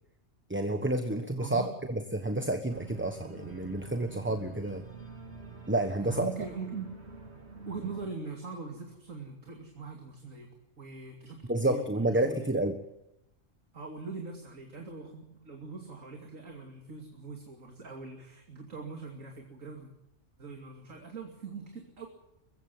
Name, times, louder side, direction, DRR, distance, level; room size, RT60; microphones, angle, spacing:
voice 1, 0.5-4.8 5.7-6.3 11.5-12.8, right 1 dB, 10° right, 7 dB, 1.2 m, -30 dB
Organ, 2.7-8.1, right 5 dB, 55° right, 2.9 m, -47 dB
voice 2, 6.0-6.9 7.7-10.5 10.8-12.4 13.7-19.9 20.4-22.1, right 4 dB, 85° right, 2 dB, 3.2 m, -42 dB
22.5 x 15.5 x 9.3 m, 0.85 s
omnidirectional pair, 1.3 m